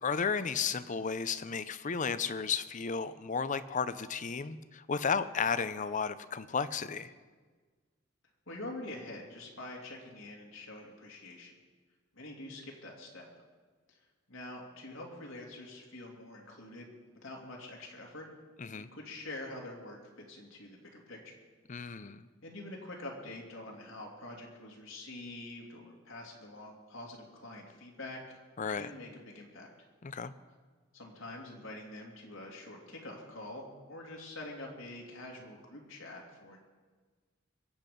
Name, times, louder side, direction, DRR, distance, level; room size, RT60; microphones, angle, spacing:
voice 1, 0.0-7.1 18.6-18.9 21.7-22.2 28.6-28.9 30.0-30.3, left 6 dB, 40° left, 14 dB, 0.6 m, -33 dB
voice 2, 8.5-11.5 12.1-13.3 13.9-14.0 14.3-16.9 17.2-18.3 18.7-21.3 22.4-28.4 28.7-29.7 30.9-36.6, left 2 dB, 85° left, -1 dB, 2.8 m, -46 dB
22.5 x 8.2 x 5.3 m, 1.4 s
head